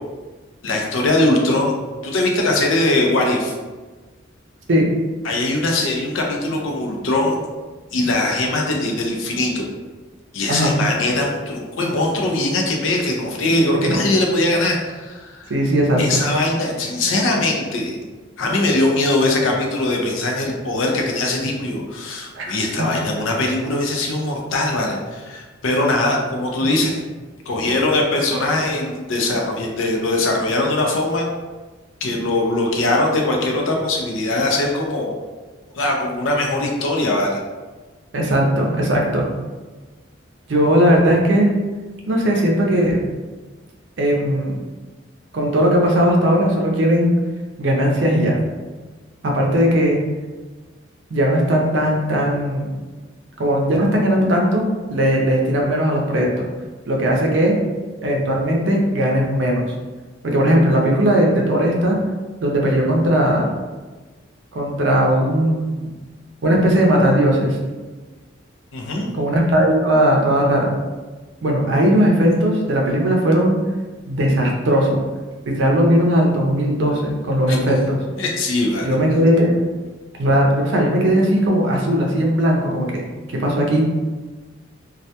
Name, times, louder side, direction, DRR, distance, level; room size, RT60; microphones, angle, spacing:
voice 1, 0.6-1.7 2.0-3.5 5.2-7.4 7.9-9.7 10.3-15.5 16.0-18.0 18.4-27.0 27.5-31.3 32.0-35.1 35.7-37.4 68.7-69.1 77.5-77.6 78.2-78.9, left 2 dB, 80° left, 0 dB, 0.5 m, -21 dB
voice 2, 15.5-16.2 22.4-22.6 38.1-39.3 40.5-41.5 42.1-43.0 44.0-44.6 45.3-47.1 47.6-48.4 49.2-50.0 51.1-52.7 53.4-56.5 56.9-57.6 58.0-59.6 60.2-62.0 62.4-63.5 64.5-65.9 66.4-67.6 69.1-70.7 71.4-73.6 74.1-75.0 75.5-78.0 78.8-79.5 80.2-83.0 83.3-83.9, equal, 65° right, -1 dB, 0.5 m, -18 dB
2.3 x 2.1 x 2.8 m, 1.3 s
head